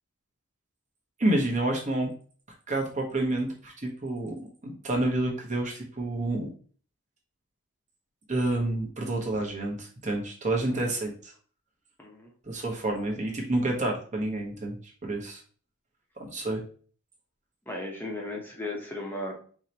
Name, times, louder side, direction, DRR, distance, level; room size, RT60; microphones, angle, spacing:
voice 1, 1.2-2.1 2.7-4.3 4.6-6.5 8.3-11.3 12.5-14.8 15.0-15.4 16.2-16.6, right 2 dB, 35° right, 0 dB, 1.0 m, -29 dB
voice 2, 12.0-12.3 17.7-19.4, left 2 dB, 10° left, -2 dB, 0.8 m, -36 dB
4.6 x 3.2 x 2.9 m, 0.42 s
head